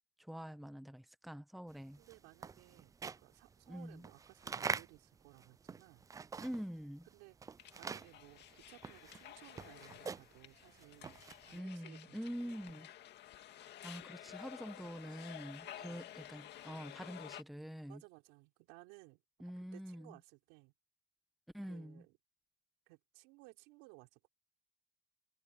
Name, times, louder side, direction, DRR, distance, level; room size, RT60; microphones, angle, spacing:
voice 1, 0.2-2.0 3.7-4.1 6.4-7.1 11.5-12.9 13.8-18.0 19.4-20.2 21.5-22.0, equal, ahead, 1.0 m, -45 dB
sound 1, 1.8-6.8 7.1-11.6, right 5 dB, 15° right, 0.3 m, -44 dB
voice 2, 2.0-6.1 7.1-7.4 7.8-12.4 12.6-12.8 15.6-16.1 17.9-20.7 21.6-22.2 22.9-24.3, right 24 dB, 85° right, 4.3 m, -60 dB
sound 2, 7.6-17.4, left 12 dB, 60° left, 2.3 m, -53 dB
supercardioid pair, 100°, 20 cm